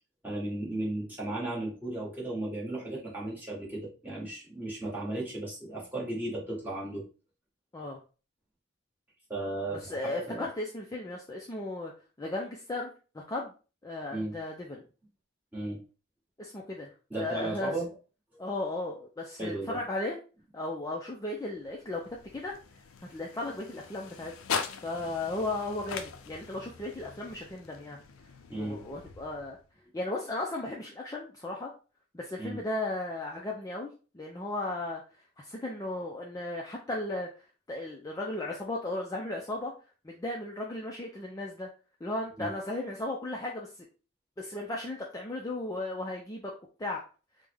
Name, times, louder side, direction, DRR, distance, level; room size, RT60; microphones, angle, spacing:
voice 1, 0.2-7.0 9.3-10.5 14.1-14.4 15.5-15.8 17.1-17.9 19.4-19.8 28.5-28.8 32.4-32.6 42.4-42.5, right 2 dB, 10° right, -5 dB, 1.2 m, -35 dB
voice 2, 9.9-11.9 12.2-12.9 13.1-13.5 13.8-14.8 16.4-17.7 18.4-20.2 20.5-22.0 22.3-22.5 23.1-24.3 24.8-28.0 28.6-29.6 29.9-31.7 32.1-33.9 34.1-35.0 35.4-37.3 37.7-39.7 40.0-41.7 42.0-43.7 44.4-46.5 46.8-47.0, left 2 dB, 15° left, -1 dB, 0.4 m, -35 dB
sound 1, 21.5-29.8, left 6 dB, 80° left, 0.4 m, -41 dB
3.5 x 2.1 x 3.4 m, 0.35 s
head